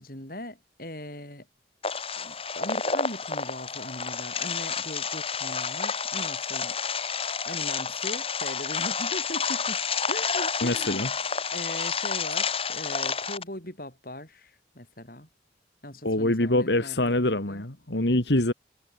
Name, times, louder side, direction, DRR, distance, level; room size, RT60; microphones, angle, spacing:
voice 1, 0.0-1.5 2.1-6.8 7.5-9.8 10.1-11.0 11.5-15.3 15.8-17.6, left 1 dB, 50° left, 6.9 m, -39 dB
sound 1, 1.8-13.4, left 5 dB, 30° left, 3.3 m, -30 dB
voice 2, 10.6-11.1 16.0-18.5, left 1 dB, 70° left, 2.5 m, -24 dB
head